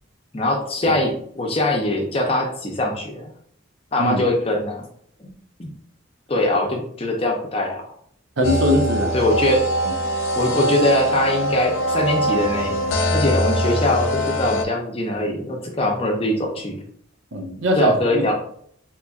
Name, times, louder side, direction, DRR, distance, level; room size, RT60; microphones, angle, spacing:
voice 1, 0.3-3.3 3.9-4.9 5.2-5.3 5.6-5.7 6.3-7.8 9.1-9.7 10.4-12.8 13.1-16.8 17.8-18.3, left 1 dB, 30° left, 1 dB, 0.6 m, -22 dB
sound 1, 8.4-14.7, equal, 85° left, 0.5 m, -23 dB
voice 2, 8.4-9.1 9.8-9.9 17.3-18.2, equal, 70° right, 3 dB, 0.7 m, -21 dB
3.9 x 2.9 x 2.3 m, 0.63 s
head